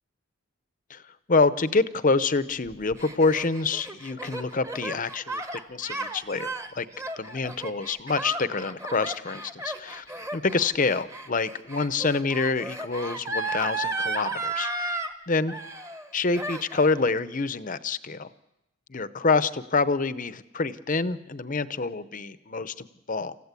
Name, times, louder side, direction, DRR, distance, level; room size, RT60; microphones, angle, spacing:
voice 1, 1.3-6.9 7.2-10.1 10.3-15.5 16.1-18.3 18.9-23.4, left 4 dB, 35° left, 14 dB, 0.7 m, -27 dB
Gasp, 2.7-15.1 15.5-16.1 16.3-17.0, right 2 dB, 15° right, 1.0 m, -34 dB
27.5 x 15.0 x 8.3 m, 0.91 s
head